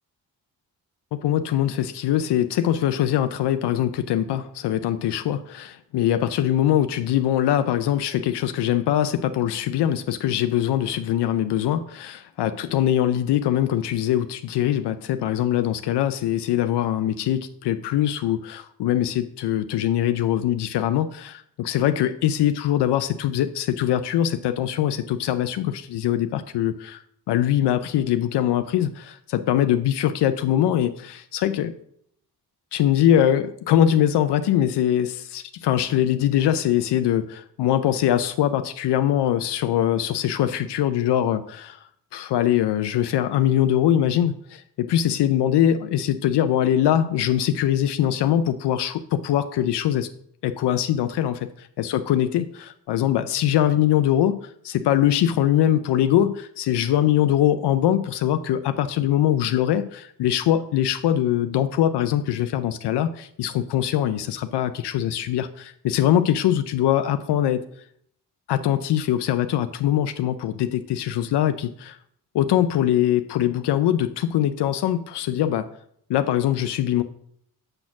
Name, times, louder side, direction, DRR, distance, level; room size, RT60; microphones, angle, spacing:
voice 1, 1.1-27.0 27.3-31.7 32.7-41.8 42.1-50.1 50.4-51.4 51.8-67.6 68.5-72.0 72.3-75.7 76.1-77.0, left 11 dB, 80° left, 10 dB, 0.5 m, -22 dB
7.7 x 4.3 x 5.8 m, 0.68 s
cardioid pair, 115°, 40 cm